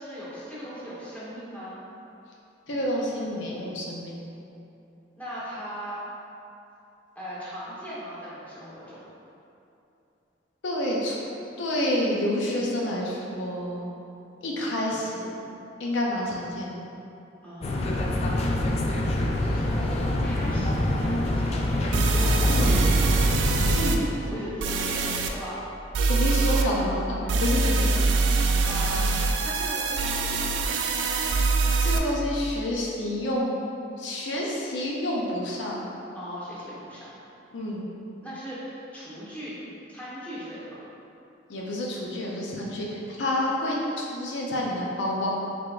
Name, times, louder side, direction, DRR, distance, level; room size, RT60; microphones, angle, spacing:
voice 1, 0.0-1.8 5.2-5.9 7.1-9.0 17.4-18.2 19.1-23.2 24.2-25.6 28.6-29.1 29.4-31.2 36.1-37.1 38.2-39.5 39.9-40.8, equal, 10° left, -10 dB, 1.1 m, -38 dB
voice 2, 2.7-4.2 10.6-11.2 11.6-13.9 14.4-15.3 15.8-16.8 18.6-18.8 22.5-22.8 23.7-24.0 24.3-24.4 26.1-27.9 31.8-33.5 34.0-35.8 37.5-37.8 41.5-45.3, left 1 dB, 85° left, -3 dB, 0.6 m, -28 dB
sound 1, 17.6-23.8, left 1 dB, 35° left, 0.3 m, -26 dB
sound 2, 21.3-21.4 21.9-24.0 24.6-25.3 25.9-26.6 27.3-32.0, right 3 dB, 85° right, 0.3 m, -23 dB
4.9 x 3.4 x 2.4 m, 2.8 s
head